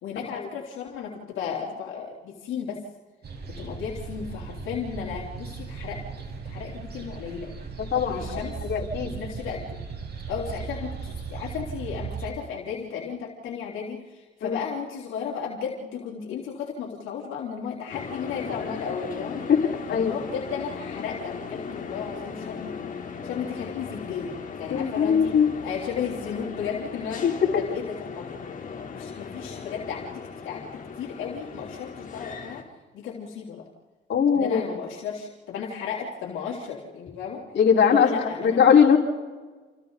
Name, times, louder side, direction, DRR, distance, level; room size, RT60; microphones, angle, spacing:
voice 1, 0.0-2.8 3.5-6.0 6.4-7.5 8.1-8.6 9.0-9.8 10.3-19.4 19.9-22.8 23.2-25.3 25.6-27.3 27.6-28.4 28.9-32.6 32.9-33.7 34.3-37.4 37.9-38.6, left 7 dB, 85° left, -3 dB, 3.6 m, -34 dB
sound 1, 3.2-12.3, right 5 dB, 55° right, 5.4 m, -37 dB
voice 2, 7.9-9.1 14.4-14.6 19.3-19.6 19.9-20.1 24.7-25.5 27.2-27.3 34.1-34.6 37.5-39.0, left 7 dB, 60° left, -2 dB, 4.9 m, -21 dB
sound 2, 17.9-32.6, left 5 dB, 40° left, 3.5 m, -38 dB
28.5 x 28.5 x 4.1 m, 1.3 s
cardioid pair, 90°, 20 cm